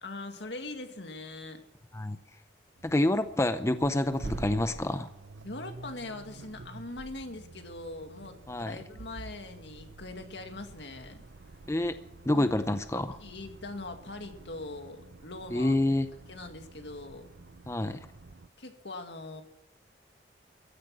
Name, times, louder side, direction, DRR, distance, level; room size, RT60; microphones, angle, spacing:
voice 1, 0.0-1.6 5.4-11.2 12.3-12.5 12.9-15.7 16.3-17.3 18.6-19.4, left 2 dB, 75° left, 5 dB, 2.1 m, -42 dB
voice 2, 2.8-5.1 8.5-8.8 11.7-12.0 12.3-13.2 15.5-16.1 17.7-18.0, left 1 dB, 15° left, 10 dB, 0.5 m, -27 dB
Accelerating revving vroom, 2.8-18.5, right 3 dB, 85° right, 0.7 m, -47 dB
15.0 x 10.0 x 7.3 m, 0.88 s
head